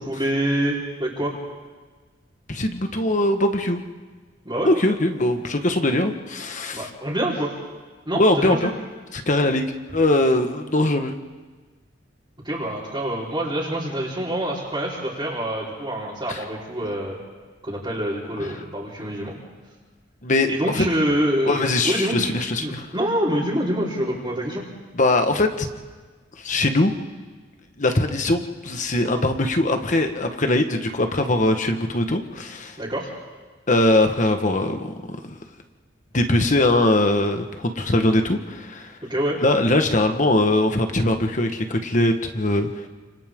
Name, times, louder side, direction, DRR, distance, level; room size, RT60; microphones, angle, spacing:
voice 1, 0.1-1.4 4.4-4.7 6.7-7.5 8.1-8.7 12.4-17.2 17.6-19.4 20.5-22.2 22.6-24.6 32.8-33.1 39.1-39.4, right 1 dB, 25° right, -9 dB, 4.3 m, -26 dB
voice 2, 2.5-3.8 4.6-6.9 8.1-8.7 9.1-11.1 16.3-16.4 18.5-18.6 20.2-20.8 21.4-22.9 24.9-25.7 26.4-26.9 27.8-32.8 33.7-34.9 35.2-35.3 36.1-38.9 39.4-42.7, left 1 dB, 45° left, 6 dB, 1.5 m, -21 dB
30.0 x 27.5 x 3.8 m, 1.4 s
head